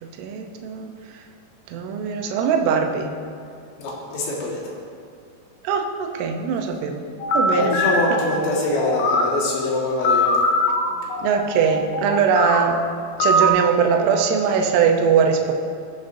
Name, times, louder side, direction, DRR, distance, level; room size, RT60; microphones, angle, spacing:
voice 1, 0.0-0.9 1.7-3.1 5.6-7.0 7.3-7.7 11.2-12.8 13.2-15.5, right 6 dB, 85° right, 3 dB, 3.3 m, -21 dB
voice 2, 3.8-4.6 7.5-10.3, left 2 dB, 65° left, -5 dB, 3.7 m, -24 dB
sound 1, 7.2-9.4 10.0-12.6 13.2-13.5, left 1 dB, 90° left, 3.4 m, -21 dB
19.0 x 6.7 x 2.6 m, 2.3 s
omnidirectional pair, 5.7 m